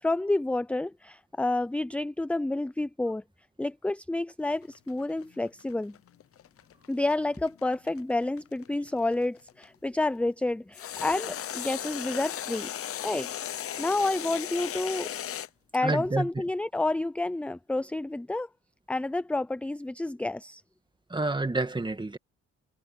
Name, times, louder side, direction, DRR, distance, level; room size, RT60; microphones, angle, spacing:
voice 1, 0.0-3.2 3.6-6.0 6.9-12.7 13.0-13.3 13.8-15.1 15.7-18.5 18.9-20.6, left 2 dB, 5° left, 0.4 m, -29 dB
sound 1, 4.5-9.6 10.7-15.5, left 10 dB, 50° left, 0.7 m, -36 dB
voice 2, 15.8-16.3 21.1-22.2, right 2 dB, 15° right, 2.0 m, -28 dB
cardioid pair, 90°, 30 cm